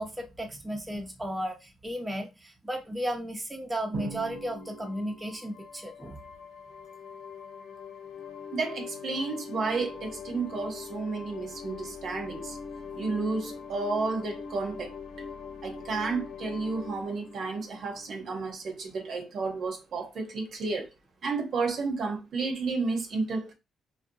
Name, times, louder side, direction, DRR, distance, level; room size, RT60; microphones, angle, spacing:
voice 1, 0.0-6.2, equal, 15° right, 0.6 m, -34 dB
Drum, 3.9-5.6, right 5 dB, 85° right, 0.8 m, -41 dB
sound 1, 4.2-18.7, left 6 dB, 80° left, 0.4 m, -43 dB
voice 2, 8.5-12.6 13.0-14.9 15.6-20.9 21.2-23.5, right 4 dB, 60° right, 0.7 m, -32 dB
2.6 x 2.2 x 2.6 m
cardioid pair, 90°, 0 cm